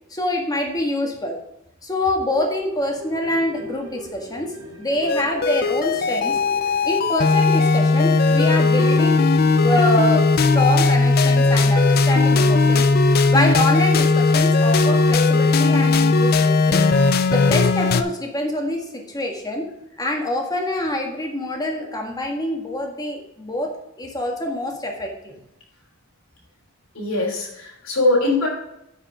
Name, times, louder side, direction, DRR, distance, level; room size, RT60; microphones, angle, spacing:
voice 1, 0.1-1.4 1.8-6.4 6.8-9.3 9.6-12.8 13.3-16.8 17.3-19.7 20.0-23.7 24.0-25.3, left 1 dB, 20° left, 2 dB, 1.7 m, -25 dB
sound 1, 2.3-19.1 19.5-19.6, equal, 80° right, 1.8 m, -39 dB
sound 2, 5.1-18.0, left 3 dB, 50° left, 0.6 m, -17 dB
voice 2, 26.9-28.5, left 2 dB, 80° left, -2 dB, 3.2 m, -22 dB
9.9 x 5.3 x 5.0 m, 0.86 s
head